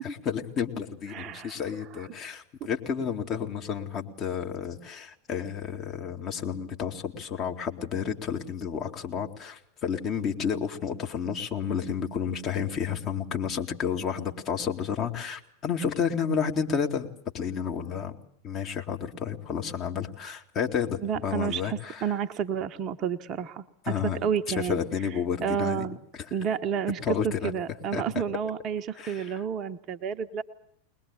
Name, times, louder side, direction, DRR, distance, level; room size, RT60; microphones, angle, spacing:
voice 1, 0.0-17.1 17.3-18.1 18.4-22.1 23.8-24.2 24.5-25.9 26.2-26.3 27.0-27.5 27.9-28.2 29.0-29.4, left 7 dB, 30° left, 3 dB, 2.2 m, -31 dB
voice 2, 1.1-1.6 2.6-2.7 21.0-23.9 24.2-24.8 25.4-26.0 26.3-30.4, right 8 dB, 35° right, 8 dB, 1.0 m, -30 dB
21.5 x 21.0 x 8.8 m, 0.67 s
figure-of-eight pair, 90°, 0 cm